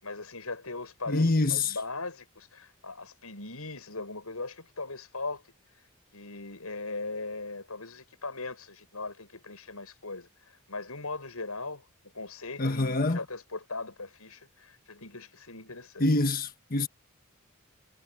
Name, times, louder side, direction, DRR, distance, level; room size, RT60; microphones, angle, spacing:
voice 1, 0.0-5.4 6.1-10.3 10.7-11.9 12.1-16.2, left 3 dB, 90° left, 7.3 m, -39 dB
voice 2, 1.1-1.7 12.6-13.2 16.0-16.9, left 2 dB, 40° left, 1.4 m, -25 dB
head